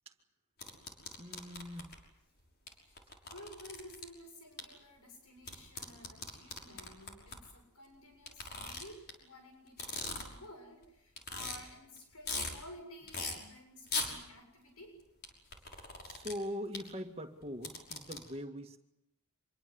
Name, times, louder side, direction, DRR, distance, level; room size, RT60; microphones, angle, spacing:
sound 1, 0.6-2.0 2.7-2.8 3.0-4.0 4.6-4.7 5.4-7.4 8.3-9.1 9.7-10.5 10.8-10.9 11.2-11.6 12.0-12.5 13.1-13.3 13.9-14.1 15.2-16.3 16.7-16.8 17.4-18.2, left 3 dB, 45° left, 5.9 m, -39 dB
voice 1, 1.2-1.9 16.0-18.8, equal, 25° right, 4 dB, 2.2 m, -42 dB
voice 2, 3.3-15.0, left 1 dB, 85° left, 3 dB, 7.4 m, -53 dB
26.5 x 23.0 x 8.0 m, 0.83 s
head